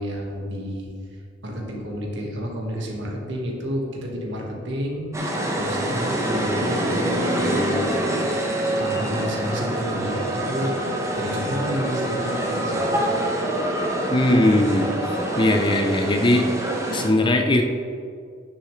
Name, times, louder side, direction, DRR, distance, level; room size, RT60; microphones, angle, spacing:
voice 1, 0.0-5.1 5.5-8.0 8.8-10.8 11.2-13.3, equal, 65° right, -1 dB, 1.6 m, -30 dB
sound 1, 5.1-17.1, right 1 dB, 15° right, 1.0 m, -25 dB
voice 2, 14.1-14.9 15.4-16.5 16.9-17.6, left 1 dB, 25° left, 4 dB, 0.6 m, -19 dB
9.6 x 7.0 x 3.2 m, 2.2 s
head